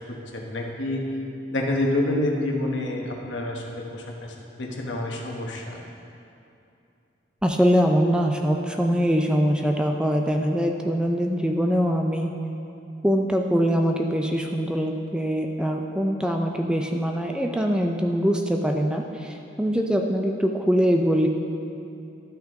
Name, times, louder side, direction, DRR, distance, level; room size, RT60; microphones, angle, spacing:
voice 1, 0.1-1.0 1.5-5.8, left 1 dB, 75° left, 0 dB, 1.2 m, -28 dB
voice 2, 7.4-12.3 13.0-21.3, equal, 5° right, 2 dB, 0.4 m, -23 dB
12.5 x 5.8 x 3.7 m, 2.7 s
head